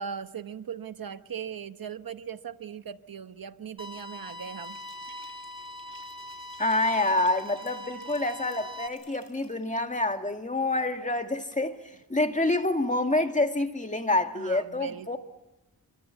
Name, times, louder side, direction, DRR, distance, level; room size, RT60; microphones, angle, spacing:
voice 1, 0.0-4.8 14.4-15.2, right 7 dB, 70° right, 1.2 m, -39 dB
sound 1, 3.8-8.9, left 1 dB, 15° right, 2.9 m, -41 dB
Liquid, 4.6-10.1, left 4 dB, 60° left, 6.5 m, -58 dB
voice 2, 6.6-15.2, left 2 dB, 20° left, 2.0 m, -27 dB
27.0 x 24.5 x 8.4 m
wide cardioid pair, 90°, 36 cm